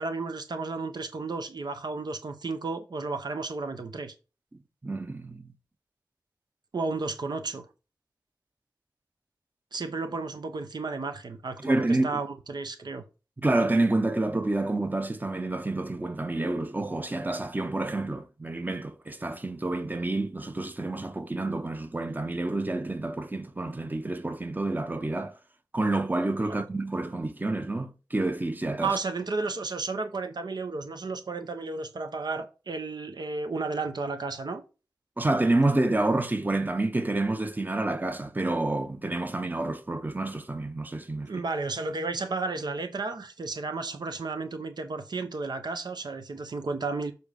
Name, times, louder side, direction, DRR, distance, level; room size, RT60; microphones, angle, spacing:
voice 1, 0.0-4.1 6.7-7.7 9.7-13.0 26.5-26.6 28.8-34.6 41.2-47.1, right 3 dB, 85° right, 0.8 m, -33 dB
voice 2, 4.8-5.5 11.6-12.2 13.4-25.3 25.7-29.0 35.2-41.3, right 2 dB, 25° right, 0.9 m, -28 dB
7.0 x 4.0 x 5.1 m
wide cardioid pair, 70°, 7 cm